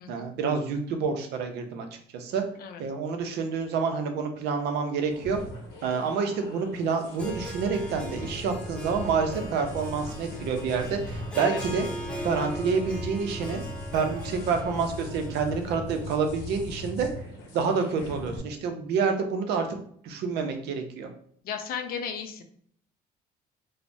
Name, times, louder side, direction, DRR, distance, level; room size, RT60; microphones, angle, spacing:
voice 1, 0.1-1.9 2.1-2.4 2.8-5.4 5.8-11.9 12.2-13.6 13.9-17.1 17.5-19.7 20.0-21.1, right 5 dB, 80° right, 5 dB, 0.6 m, -28 dB
sound 1, 5.1-18.4, left 1 dB, 85° left, 0.8 m, -39 dB
Harp, 7.0-16.1, equal, 5° left, 0.6 m, -40 dB
voice 2, 21.4-22.4, left 7 dB, 60° left, 6 dB, 0.5 m, -35 dB
3.1 x 2.1 x 2.6 m, 0.62 s
cardioid pair, 110°, 17 cm